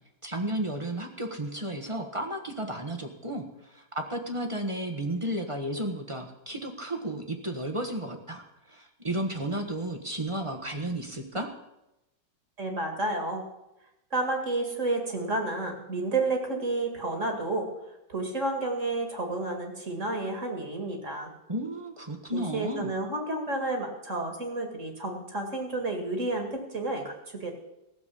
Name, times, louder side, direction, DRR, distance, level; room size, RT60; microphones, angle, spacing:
voice 1, 0.2-11.5 21.5-22.9, right 1 dB, 20° right, 3 dB, 1.2 m, -33 dB
voice 2, 12.6-13.4 14.1-17.7 18.1-21.3 22.3-27.5, right 2 dB, 40° right, 3 dB, 2.4 m, -31 dB
16.0 x 7.2 x 8.5 m, 0.92 s
omnidirectional pair, 2.0 m